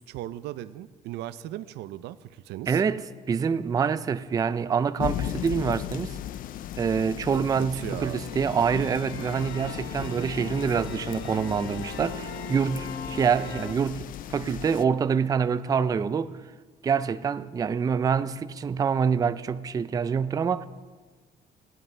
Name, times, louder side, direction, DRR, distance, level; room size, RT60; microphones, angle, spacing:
voice 1, 0.0-2.8 7.3-8.2 10.0-10.3, right 14 dB, 80° right, 0.5 m, -38 dB
voice 2, 2.7-6.2 6.8-16.4 16.8-20.7, right 6 dB, 20° right, 0.3 m, -26 dB
sound 1, 5.0-14.8, left 11 dB, 55° left, 0.4 m, -37 dB
sound 2, 8.0-13.7, left 4 dB, 75° left, 1.3 m, -39 dB
17.5 x 10.5 x 3.3 m
cardioid pair, 110°, 17 cm